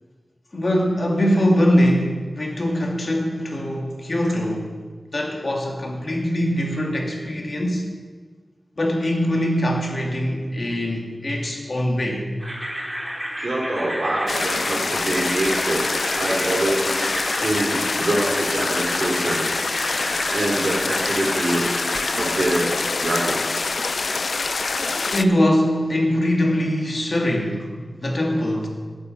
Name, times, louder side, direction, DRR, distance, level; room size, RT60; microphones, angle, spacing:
voice 1, 0.5-4.7 5.1-7.9 8.8-12.3 25.1-27.7 28.0-28.7, equal, 50° left, 1 dB, 1.9 m, -22 dB
sound 1, 12.4-22.6, equal, 15° right, 3.0 m, -31 dB
voice 2, 13.4-15.9 16.2-16.9 17.4-19.4 20.3-21.7 22.1-23.7, right 1 dB, 65° right, -2 dB, 3.2 m, -25 dB
sound 2, 14.3-25.2, left 4 dB, 70° left, 0.4 m, -25 dB
9.1 x 8.6 x 6.6 m, 1.4 s
wide cardioid pair, 85°, 0 cm